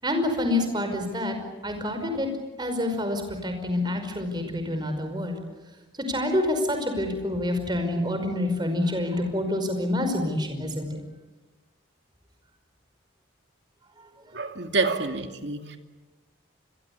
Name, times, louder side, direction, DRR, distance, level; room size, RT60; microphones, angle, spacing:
voice 1, 0.0-1.4 1.6-2.3 2.6-5.4 6.1-11.0, left 1 dB, 20° right, 6 dB, 5.3 m, -27 dB
voice 2, 14.3-15.8, right 3 dB, 65° right, 6 dB, 2.5 m, -27 dB
28.5 x 22.5 x 8.5 m, 1.1 s
head